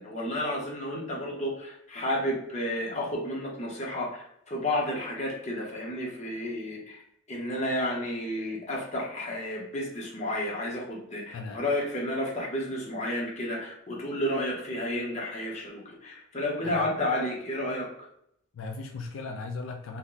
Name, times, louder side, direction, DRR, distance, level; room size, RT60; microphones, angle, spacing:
voice 1, 0.0-7.0 7.3-17.9, left 1 dB, 35° left, -2 dB, 0.8 m, -31 dB
voice 2, 18.5-20.0, left 3 dB, 85° left, 3 dB, 0.4 m, -37 dB
2.8 x 2.1 x 3.7 m, 0.74 s
head